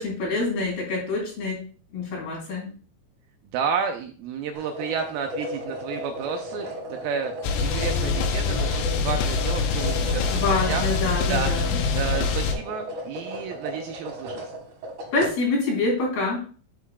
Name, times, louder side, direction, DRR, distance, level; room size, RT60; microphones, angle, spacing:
voice 1, 0.0-1.6 1.9-2.7 10.3-11.7 15.1-16.4, left 3 dB, 70° left, -2 dB, 5.2 m, -26 dB
voice 2, 3.5-7.3 7.6-10.4 10.7-10.9 11.3-14.5, right 7 dB, 80° right, 5 dB, 2.2 m, -31 dB
sound 1, 4.5-15.3, equal, 55° right, 2.7 m, -35 dB
sound 2, 7.4-12.5, left 5 dB, 85° left, 2.9 m, -25 dB
8.4 x 8.3 x 2.3 m, 0.40 s
omnidirectional pair, 4.7 m